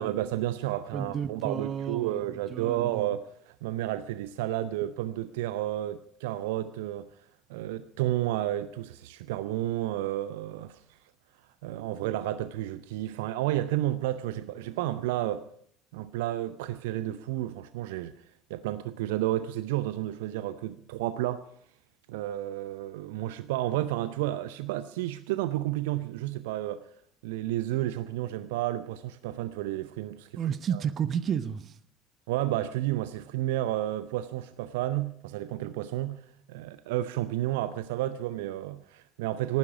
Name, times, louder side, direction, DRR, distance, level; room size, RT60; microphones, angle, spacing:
voice 1, 0.0-7.1 7.5-10.8 11.6-15.4 15.9-18.1 18.5-21.4 22.1-26.8 27.2-30.3 30.7-30.8 32.3-36.2 36.5-39.6, right 14 dB, 65° right, 0.6 m, -31 dB
voice 2, 0.9-3.0 30.4-31.7, right 8 dB, 40° right, 0.9 m, -32 dB
18.5 x 15.0 x 4.9 m
figure-of-eight pair, 65°, 0 cm